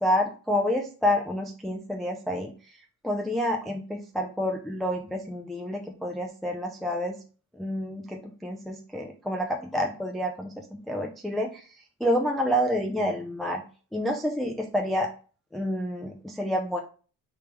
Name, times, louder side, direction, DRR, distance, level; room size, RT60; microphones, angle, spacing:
voice 1, 0.0-7.1 7.5-13.6 13.9-15.1 15.5-16.8, equal, ahead, 2 dB, 0.5 m, -29 dB
4.5 x 3.5 x 3.2 m, 0.38 s
cardioid pair, 120°, 34 cm